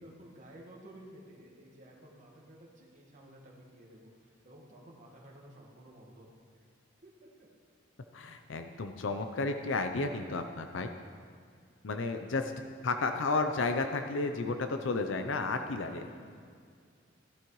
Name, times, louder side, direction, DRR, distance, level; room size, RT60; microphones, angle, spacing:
voice 1, 0.0-6.3 7.0-7.1 7.4-7.5 15.8-16.4, right 1 dB, 40° right, -3 dB, 1.5 m, -54 dB
voice 2, 8.1-10.9 11.8-12.5 12.8-16.1, left 3 dB, 75° left, 7 dB, 0.6 m, -32 dB
15.0 x 11.5 x 3.1 m, 2.1 s
head